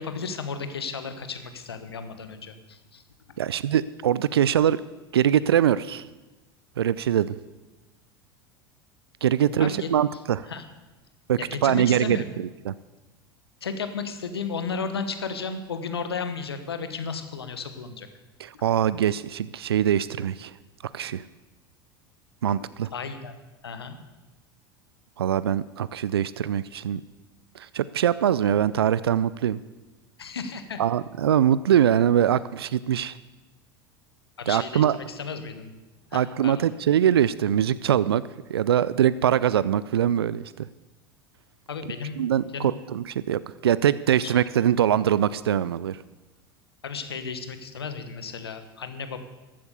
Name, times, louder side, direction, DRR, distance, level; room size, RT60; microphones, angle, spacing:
voice 1, 0.0-3.0 9.6-9.9 10.5-10.6 11.4-12.4 13.6-18.1 22.9-23.3 23.6-24.0 30.2-30.8 34.4-35.7 36.1-36.6 41.7-42.2 42.5-42.7 44.2-44.3 46.8-49.2, left 5 dB, 85° left, 9 dB, 1.3 m, -34 dB
voice 2, 3.4-4.8 5.1-6.1 6.8-7.3 9.2-10.5 11.3-12.7 18.4-20.5 20.9-21.2 22.4-22.9 25.2-27.0 27.6-29.6 30.8-33.2 34.5-35.0 36.1-38.2 38.5-40.4 42.2-46.0, right 10 dB, 85° right, 17 dB, 0.4 m, -23 dB
14.0 x 8.5 x 6.8 m, 1.1 s
hypercardioid pair, 85°, 13 cm